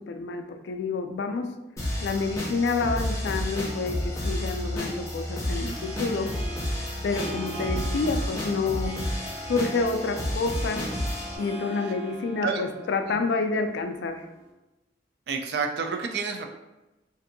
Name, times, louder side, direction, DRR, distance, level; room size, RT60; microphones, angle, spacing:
voice 1, 0.0-1.5 2.0-6.3 7.0-9.2 9.5-10.9 11.4-14.2, left 4 dB, 75° left, 6 dB, 0.3 m, -28 dB
sound 1, 1.8-11.4, left 1 dB, 15° left, 0.5 m, -31 dB
Harp, 4.1-14.5, right 2 dB, 30° right, 1.4 m, -42 dB
voice 2, 15.3-16.4, right 5 dB, 65° right, 4 dB, 0.4 m, -30 dB
2.6 x 2.5 x 2.6 m, 1.0 s
head